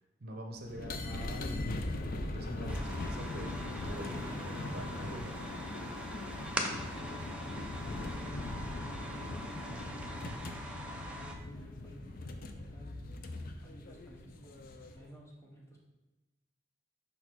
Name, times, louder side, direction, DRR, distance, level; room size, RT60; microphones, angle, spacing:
voice 1, 0.2-5.4, right 1 dB, 55° right, 3 dB, 0.7 m, -44 dB
sound 1, 0.6-15.1, left 2 dB, 50° left, 0.4 m, -40 dB
sound 2, 2.7-11.4, right 1 dB, 5° right, 0.5 m, -43 dB
voice 2, 7.0-8.4 8.8-13.0 13.6-15.8, right 1 dB, 15° left, -3 dB, 1.2 m, -55 dB
5.4 x 4.0 x 4.5 m, 1.1 s
head